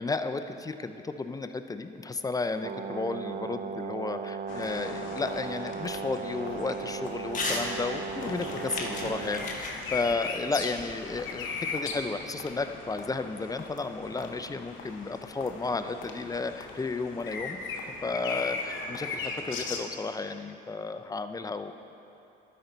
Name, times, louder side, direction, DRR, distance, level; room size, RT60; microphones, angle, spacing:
voice 1, 0.0-17.6 18.0-21.7, left 3 dB, 20° left, 8 dB, 0.4 m, -33 dB
Brass instrument, 2.6-9.6, right 6 dB, 55° right, 0.5 m, -37 dB
sound 1, 4.5-19.9, left 4 dB, 80° left, 0.9 m, -39 dB
Crumpling crinkling / Tearing, 7.3-7.7 8.0-11.3, left 2 dB, 40° left, 1.4 m, -36 dB
12.5 x 5.5 x 3.9 m, 2.8 s
cardioid pair, 90°, 20 cm